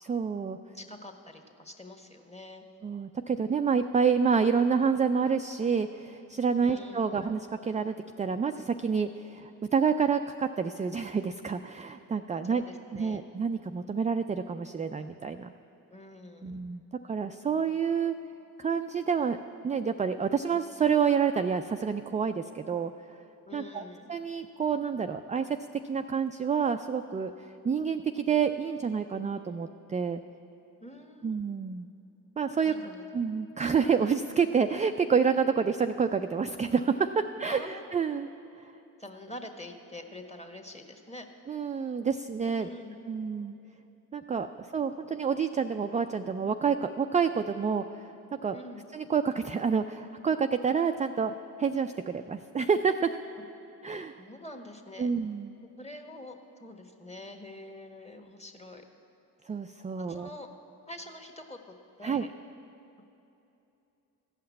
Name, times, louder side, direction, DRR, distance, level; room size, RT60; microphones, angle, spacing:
voice 1, 0.1-0.6 2.8-12.6 12.9-15.5 16.4-18.1 18.6-19.4 19.6-22.9 23.5-23.8 24.1-25.6 25.8-27.3 27.6-30.2 31.2-31.9 32.4-32.7 33.1-38.3 41.5-42.7 43.1-43.5 44.1-47.9 48.4-48.6 48.9-51.3 51.6-53.1 53.8-54.2 55.0-55.5 59.5-60.3 62.0-62.2, right 6 dB, 20° right, 7 dB, 0.3 m, -28 dB
voice 2, 0.7-2.6 6.6-7.2 12.4-13.2 15.9-16.6 23.4-24.1 30.8-31.4 32.6-33.0 37.5-37.8 39.0-41.3 42.6-43.0 48.5-48.8 54.2-55.1 55.6-58.8 60.0-60.5 60.9-61.6 62.0-62.3, left 1 dB, 15° left, 4 dB, 1.4 m, -45 dB
14.5 x 5.7 x 8.4 m, 2.8 s
hypercardioid pair, 40°, 43 cm